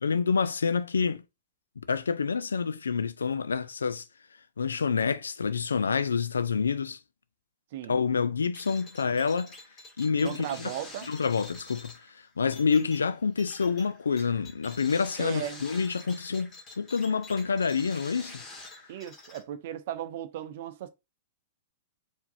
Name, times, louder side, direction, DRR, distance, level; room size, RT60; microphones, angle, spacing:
voice 1, 0.0-1.2 1.8-4.0 4.6-7.0 7.9-9.5 10.0-10.7 11.1-11.9 12.4-18.4, left 5 dB, 75° left, 0.4 m, -27 dB
sound 1, 8.5-19.4, left 2 dB, 25° left, 2.1 m, -47 dB
voice 2, 10.2-11.1 15.2-15.6 18.9-20.9, right 11 dB, 55° right, 0.6 m, -36 dB
4.6 x 3.4 x 2.7 m
figure-of-eight pair, 105°, 0 cm